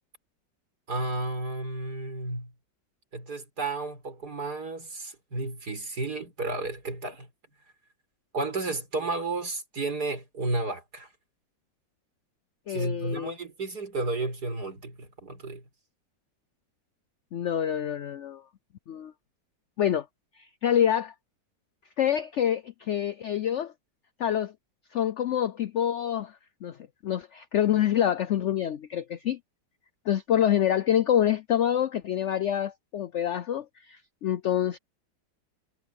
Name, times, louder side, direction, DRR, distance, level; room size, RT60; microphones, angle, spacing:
voice 1, 0.9-2.5 3.1-7.3 8.3-11.1 12.7-15.6, right 2 dB, 60° right, 5.5 m, -32 dB
voice 2, 12.7-13.3 17.3-18.4 18.9-19.1 19.8-20.1 20.4-21.1 22.0-23.7 24.2-24.5 24.9-26.3 26.6-26.8 27.0-29.4 30.1-34.8, left 10 dB, 85° left, 0.6 m, -26 dB
omnidirectional pair, 1.9 m